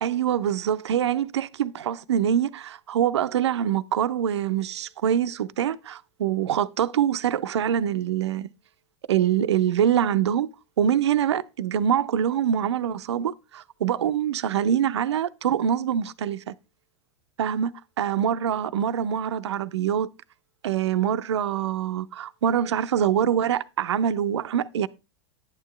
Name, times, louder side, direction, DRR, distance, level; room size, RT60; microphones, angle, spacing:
voice 1, 0.0-8.5 9.1-10.5 10.8-16.5 17.4-17.7 18.0-20.1 20.6-24.9, right 9 dB, 80° right, 0.5 m, -24 dB
11.0 x 9.0 x 3.1 m
hypercardioid pair, 100°, 14 cm